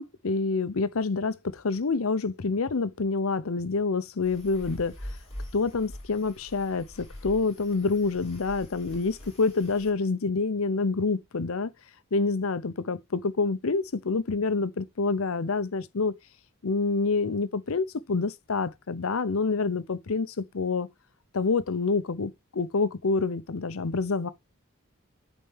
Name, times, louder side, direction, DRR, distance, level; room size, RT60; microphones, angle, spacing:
voice 1, 0.0-5.0 5.5-11.7 12.1-16.2 16.6-20.9 21.3-24.3, left 4 dB, 75° left, 0.7 m, -27 dB
sound 1, 4.2-9.9, equal, 30° left, 5.4 m, -44 dB
9.1 x 4.2 x 3.4 m
head